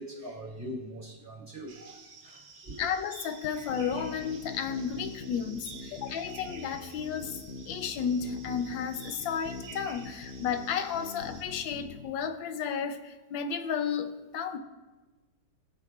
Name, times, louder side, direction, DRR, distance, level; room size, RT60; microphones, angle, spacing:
voice 1, 0.0-2.9, equal, 30° right, 3.2 m, -42 dB
sound 1, 1.7-11.4, right 5 dB, 70° right, 1.6 m, -51 dB
voice 2, 2.8-7.4 7.7-14.6, left 7 dB, 80° left, 1.4 m, -33 dB
sound 2, 3.4-12.1, left 4 dB, 60° left, 0.8 m, -43 dB
19.0 x 6.6 x 2.4 m
omnidirectional pair, 2.1 m